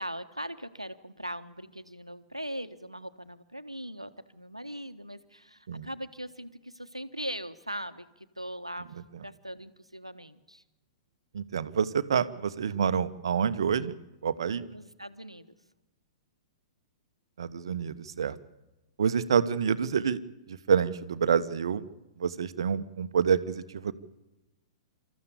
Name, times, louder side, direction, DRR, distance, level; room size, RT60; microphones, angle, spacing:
voice 1, 0.0-10.6 14.7-15.5, equal, 90° right, 12 dB, 1.3 m, -40 dB
voice 2, 11.3-14.0 14.2-14.6 17.4-18.4 19.0-20.2 20.5-21.9 22.2-23.9, right 7 dB, 60° right, 13 dB, 1.3 m, -27 dB
27.5 x 14.5 x 8.5 m, 1.0 s
figure-of-eight pair, 105°, 3 cm